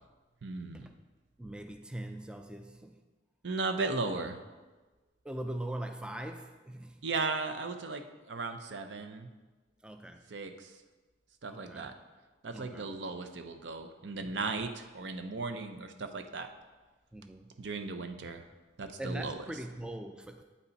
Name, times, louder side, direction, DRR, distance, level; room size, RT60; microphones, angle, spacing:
voice 1, 0.4-0.9 3.4-4.4 7.0-9.3 10.3-10.7 11.4-11.9 12.4-16.5 17.6-18.4 18.8-19.4, right 3 dB, 75° right, 7 dB, 0.6 m, -36 dB
voice 2, 1.4-3.0 5.2-7.1 9.8-10.3 11.5-11.9 12.5-12.9 14.2-14.6 15.5-15.7 17.1-17.5 19.0-20.4, right 1 dB, 5° right, 6 dB, 0.4 m, -41 dB
8.3 x 5.7 x 4.0 m, 1.2 s
head